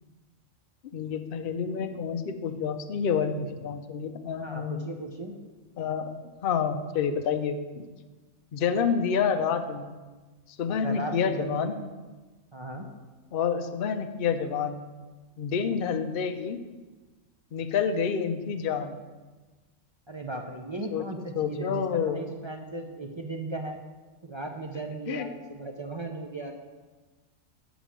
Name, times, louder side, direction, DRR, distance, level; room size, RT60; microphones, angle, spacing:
voice 1, 0.9-4.9 5.8-6.1 6.4-7.8 8.5-10.0 10.6-11.7 13.3-14.8 15.4-16.6 17.5-19.0 20.9-21.0 21.4-22.2 25.1-25.3, left 6 dB, 55° left, 7 dB, 0.7 m, -28 dB
voice 2, 4.4-5.3 10.8-11.9 12.5-12.8 20.1-23.8 24.2-26.5, right 2 dB, 40° right, 2 dB, 0.4 m, -36 dB
7.2 x 5.1 x 7.3 m, 1.3 s
omnidirectional pair, 1.4 m